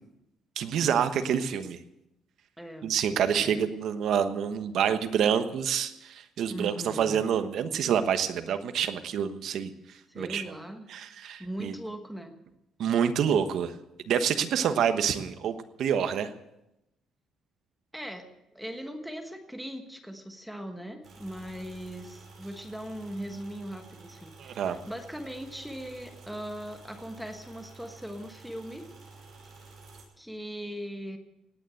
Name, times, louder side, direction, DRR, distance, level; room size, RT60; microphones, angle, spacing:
voice 1, 0.6-1.8 2.8-9.7 10.1-10.5 10.9-11.7 12.8-13.7 14.1-16.3 24.4-24.8, right 8 dB, 55° right, 9 dB, 1.2 m, -27 dB
voice 2, 2.6-2.9 3.3-3.6 6.5-7.3 10.1-10.9 11.4-12.4 17.9-18.2 18.5-28.9 30.2-31.2, equal, ahead, 5 dB, 1.3 m, -39 dB
sound 1, 21.0-30.0, right 3 dB, 35° right, 5.7 m, -50 dB
17.5 x 9.7 x 7.9 m, 0.87 s
cardioid pair, 165°, 0 cm